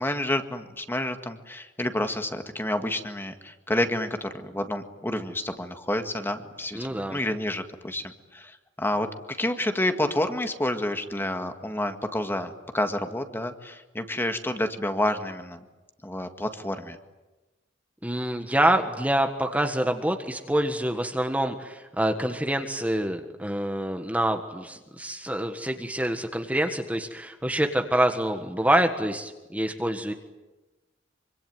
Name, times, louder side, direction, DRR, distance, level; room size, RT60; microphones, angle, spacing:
voice 1, 0.0-15.6 16.0-17.0, left 1 dB, 10° left, 7 dB, 1.9 m, -29 dB
voice 2, 6.7-7.2 18.0-30.1, right 1 dB, 10° right, 5 dB, 1.6 m, -26 dB
25.5 x 25.0 x 9.3 m, 1.1 s
head